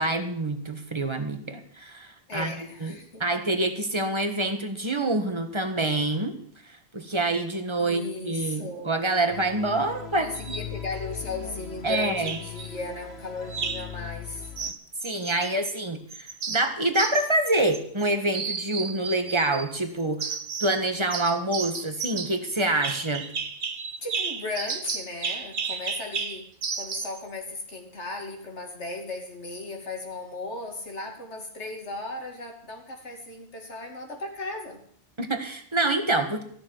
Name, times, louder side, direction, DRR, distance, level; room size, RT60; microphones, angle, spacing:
voice 1, 0.0-6.3 6.6-10.6 11.8-12.4 15.0-23.3 35.2-36.4, right 2 dB, 25° right, 6 dB, 1.6 m, -27 dB
voice 2, 2.3-3.2 7.8-8.9 10.2-14.5 24.0-26.5 26.8-34.8, left 3 dB, 85° left, 2 dB, 3.0 m, -36 dB
sound 1, 9.3-14.7, left 9 dB, 65° left, 1.5 m, -40 dB
sound 2, 10.3-10.7 11.9-12.7 13.5-13.9 14.6-15.8 16.1-18.0 18.3-19.7 20.2-20.8 21.1-27.2, right 5 dB, 50° right, 1.0 m, -33 dB
15.0 x 6.8 x 9.3 m, 0.62 s
omnidirectional pair, 1.1 m